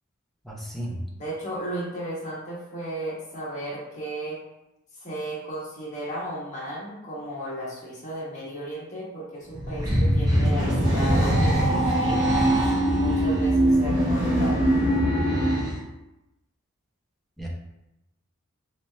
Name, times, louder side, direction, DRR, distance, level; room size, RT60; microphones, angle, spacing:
voice 1, 0.5-1.0 17.4-17.5, right 1 dB, ahead, -4 dB, 0.6 m, -34 dB
voice 2, 1.2-4.4 5.0-12.2 12.9-14.6, right 1 dB, 35° left, -6 dB, 1.2 m, -34 dB
sound 1, 9.5-15.8, right 1 dB, 20° right, 1.1 m, -22 dB
3.3 x 2.8 x 3.2 m, 0.90 s
head